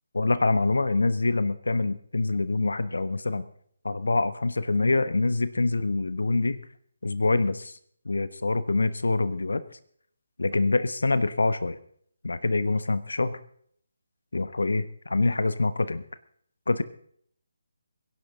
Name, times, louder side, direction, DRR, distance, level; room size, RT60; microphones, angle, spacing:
voice 1, 0.1-3.4 3.8-6.6 7.0-7.7 8.0-9.6 10.4-11.8 12.2-13.4 14.3-16.0 16.7-16.8, left 3 dB, 70° left, 14 dB, 1.1 m, -25 dB
22.5 x 11.0 x 3.8 m, 0.63 s
figure-of-eight pair, 150°, 0 cm